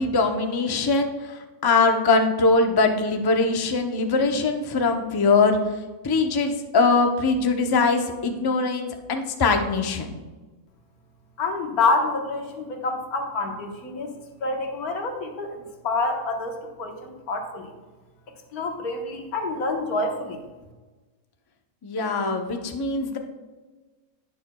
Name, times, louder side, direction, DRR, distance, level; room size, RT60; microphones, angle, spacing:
voice 1, 0.0-5.6 6.0-10.2 21.8-23.2, left 3 dB, 25° left, 4 dB, 0.5 m, -22 dB
voice 2, 11.4-14.1 14.4-15.6 15.8-17.7 18.5-20.4, left 3 dB, 90° left, 3 dB, 1.7 m, -27 dB
10.5 x 9.5 x 2.3 m, 1.3 s
omnidirectional pair, 1.5 m